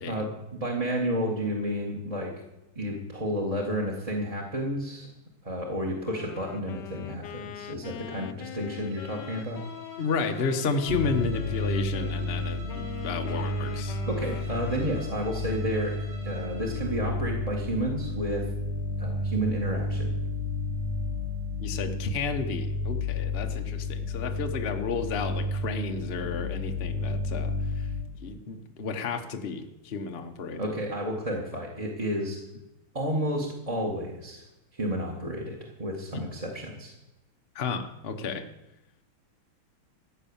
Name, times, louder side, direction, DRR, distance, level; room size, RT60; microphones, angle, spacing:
voice 1, 0.1-2.3 2.8-5.1 5.4-9.6 14.1-16.0 16.2-18.5 19.0-20.1 30.6-32.4 32.9-34.4 34.7-36.9, equal, 20° right, 1 dB, 1.8 m, -31 dB
Wind instrument woodwind instrument, 6.0-12.2 12.7-15.3, left 10 dB, 65° left, 1.3 m, -43 dB
Bowed string instrument, 8.7-17.0, right 1 dB, 75° right, 3.3 m, -50 dB
voice 2, 10.0-14.0 21.6-27.9 28.2-30.7 36.1-36.2 37.5-38.4, left 4 dB, 35° left, 5 dB, 1.1 m, -32 dB
sound 1, 10.9-28.0, left 2 dB, 55° right, 3.5 m, -32 dB
15.0 x 9.1 x 7.1 m, 0.93 s
omnidirectional pair, 2.3 m